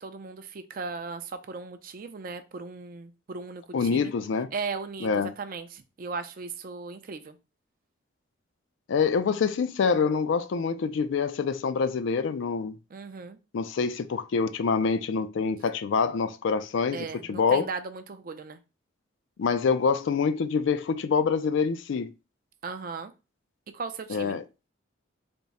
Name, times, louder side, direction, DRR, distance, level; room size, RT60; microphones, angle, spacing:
voice 1, 0.0-4.1 4.5-7.4 12.9-13.4 16.9-18.6 22.6-23.1 23.7-24.4, right 4 dB, 45° right, 0.4 m, -37 dB
voice 2, 3.7-4.5 5.0-5.3 8.9-12.8 13.5-17.6 19.4-22.1 24.1-24.4, left 5 dB, 65° left, 0.3 m, -26 dB
3.5 x 2.0 x 4.0 m
head